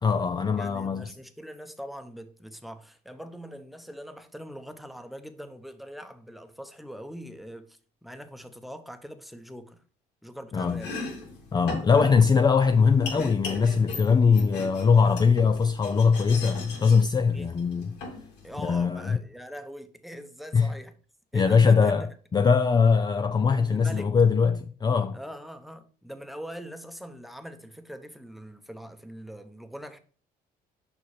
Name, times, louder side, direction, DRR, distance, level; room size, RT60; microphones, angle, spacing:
voice 1, 0.0-1.1 10.5-10.8 11.5-18.0 18.6-19.2 20.5-20.7 21.3-22.1 22.3-25.2, left 5 dB, 25° left, 0.5 m, -21 dB
voice 2, 0.6-9.8 10.2-10.9 17.2-17.5 18.4-20.9 21.3-22.1 23.5-24.2 25.1-30.0, equal, ahead, 0.9 m, -42 dB
Domestic sounds home sounds, 10.7-18.9, left 3 dB, 90° left, 3.0 m, -39 dB
7.0 x 5.6 x 4.9 m
cardioid pair, 110°, 17 cm